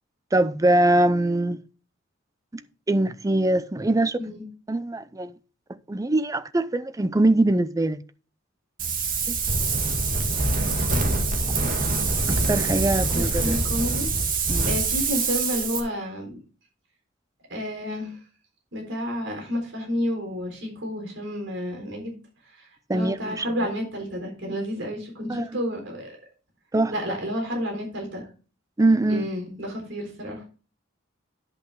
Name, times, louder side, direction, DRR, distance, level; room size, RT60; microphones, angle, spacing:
voice 1, 0.3-1.6 2.9-4.2 4.7-5.3 5.9-8.0 9.3-9.4 12.3-13.6 14.5-14.7 22.9-23.4 25.3-25.5 26.7-26.9 28.8-29.3, right 2 dB, 15° right, 0.5 m, -22 dB
Wind, 8.8-15.8, right 3 dB, 45° right, 2.0 m, -24 dB
voice 2, 13.2-14.1 14.6-16.4 17.5-18.1 18.7-22.2 22.9-26.1 26.9-28.3 29.1-30.4, equal, 65° right, 3.8 m, -30 dB
10.5 x 5.6 x 4.6 m
head